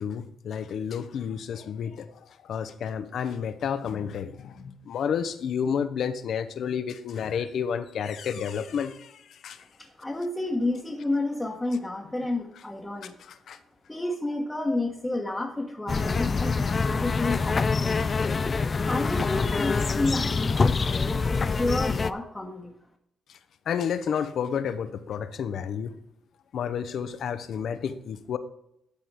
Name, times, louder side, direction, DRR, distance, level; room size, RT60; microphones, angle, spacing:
voice 1, 0.0-9.6 13.3-13.6 23.3-23.4 23.7-26.0 26.5-28.4, left 7 dB, 65° left, 11 dB, 0.7 m, -31 dB
voice 2, 9.8-13.2 13.9-18.1 18.8-22.7, left 2 dB, 10° left, -2 dB, 1.2 m, -30 dB
sound 1, 15.9-22.1, left 4 dB, 35° left, 0.4 m, -25 dB
11.5 x 4.2 x 4.8 m, 0.80 s
cardioid pair, 90°, 0 cm